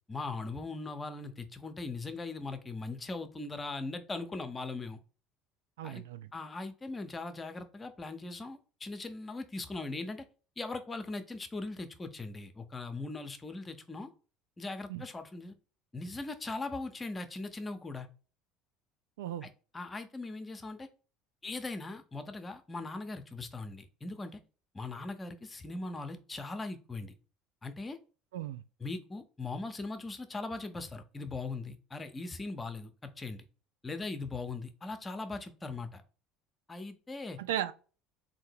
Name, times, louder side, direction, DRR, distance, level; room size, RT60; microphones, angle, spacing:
voice 1, 0.1-5.0 5.8-6.0 6.3-10.2 10.6-14.1 14.6-15.5 15.9-18.1 19.4-20.9 21.4-24.4 24.7-27.1 27.6-28.0 28.8-33.5 33.8-36.0 36.7-37.4, left 3 dB, 25° left, 0.7 m, -40 dB
voice 2, 5.8-6.3 14.9-15.0 19.2-19.5 28.3-28.6 37.4-37.7, right 12 dB, 75° right, 0.3 m, -36 dB
3.7 x 2.8 x 4.4 m
hypercardioid pair, 70°, 0 cm